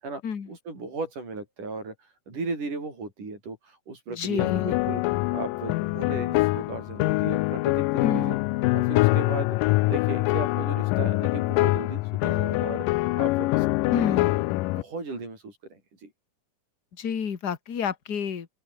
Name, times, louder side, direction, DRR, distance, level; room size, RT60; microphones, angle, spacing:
voice 1, 0.5-8.4 8.7-13.7 14.7-16.1, right 3 dB, 70° right, 9.6 m, -36 dB
voice 2, 4.1-4.8 8.0-8.4 13.9-14.5 16.9-18.5, left 7 dB, 35° left, 1.9 m, -30 dB
sound 1, 4.4-14.8, left 20 dB, 90° left, 2.3 m, -24 dB
open air
omnidirectional pair, 3.8 m